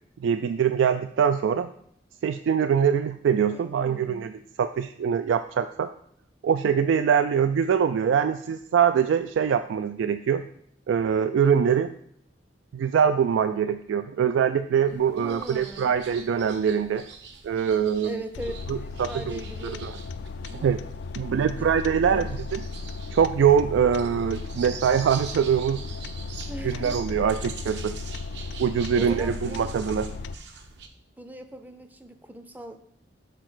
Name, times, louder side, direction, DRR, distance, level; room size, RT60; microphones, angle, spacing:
voice 1, 0.2-1.7 2.2-4.3 4.6-5.9 6.4-10.5 10.9-11.9 12.7-17.0 17.4-18.2 18.7-19.9 20.6-20.8 21.2-22.6 23.1-25.8 26.6-28.0 28.6-30.1, right 7 dB, 80° right, 10 dB, 0.3 m, -23 dB
voice 2, 3.5-4.4 15.2-15.9 18.0-20.0 20.4-20.7 21.4-21.7 22.1-22.4 26.5-27.0 28.9-29.7 31.2-32.8, equal, 10° right, 8 dB, 0.5 m, -40 dB
sound 1, 14.9-30.9, right 5 dB, 65° right, 0.8 m, -44 dB
sound 2, 18.3-30.4, left 4 dB, 65° left, 0.3 m, -36 dB
6.7 x 4.1 x 6.1 m, 0.68 s
head